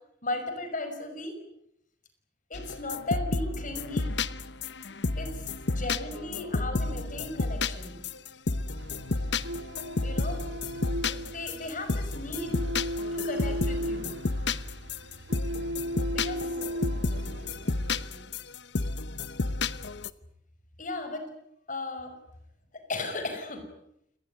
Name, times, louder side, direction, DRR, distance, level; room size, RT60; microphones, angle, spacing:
voice 1, 0.2-1.4 2.5-4.1 5.2-8.0 10.0-10.6 11.1-12.6 13.1-14.2 16.1-16.4 20.8-21.3 21.7-22.1 22.9-23.7, left 2 dB, 45° left, 7 dB, 5.7 m, -36 dB
sound 1, 2.5-20.1, left 3 dB, 65° left, 1.0 m, -31 dB
sound 2, 8.8-18.1, equal, 70° right, 1.1 m, -37 dB
voice 2, 16.3-18.3, right 1 dB, 40° right, 4 dB, 8.0 m, -50 dB
28.5 x 20.0 x 9.4 m, 0.77 s
head